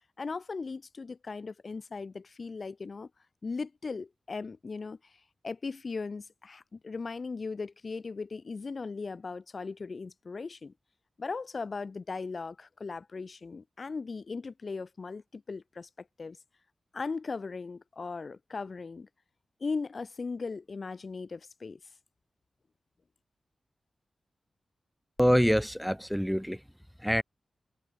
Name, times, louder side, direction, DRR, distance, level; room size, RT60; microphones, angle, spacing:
voice 1, 0.2-3.1 3.4-5.0 5.4-10.7 11.2-15.9 16.2-16.4 16.9-19.1 19.6-21.8, left 4 dB, 50° left, 6.0 m, -38 dB
voice 2, 25.2-26.6 27.0-27.2, equal, ahead, 3.1 m, -25 dB
wide cardioid pair, 80°, 0 cm